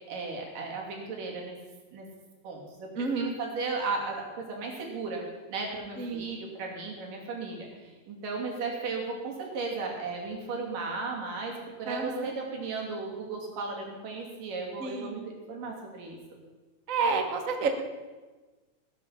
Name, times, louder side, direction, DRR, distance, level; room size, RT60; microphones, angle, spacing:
voice 1, 0.1-1.6 1.9-2.1 2.4-5.2 5.5-16.2, right 4 dB, 75° right, -1 dB, 4.5 m, -35 dB
voice 2, 3.0-3.4 6.0-6.4 11.9-12.3 14.8-15.3 16.9-17.7, right 4 dB, 55° right, 4 dB, 0.8 m, -30 dB
19.5 x 10.0 x 5.8 m, 1.3 s
omnidirectional pair, 3.9 m